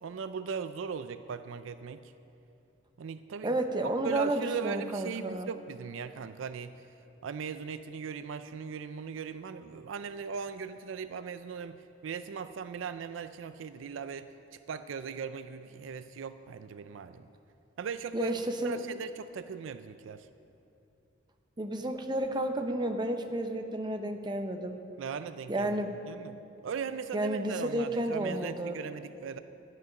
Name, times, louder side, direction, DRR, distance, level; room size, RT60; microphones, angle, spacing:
voice 1, 0.0-2.1 3.0-3.6 4.0-6.7 7.2-17.3 17.8-18.3 18.6-20.3 25.0-25.8 26.1-29.4, right 6 dB, 70° right, 11 dB, 0.4 m, -39 dB
voice 2, 3.4-5.5 18.1-18.8 21.6-24.8 25.5-26.2 27.1-28.8, right 1 dB, 25° right, 5 dB, 0.8 m, -31 dB
12.5 x 10.5 x 5.9 m, 2.7 s
head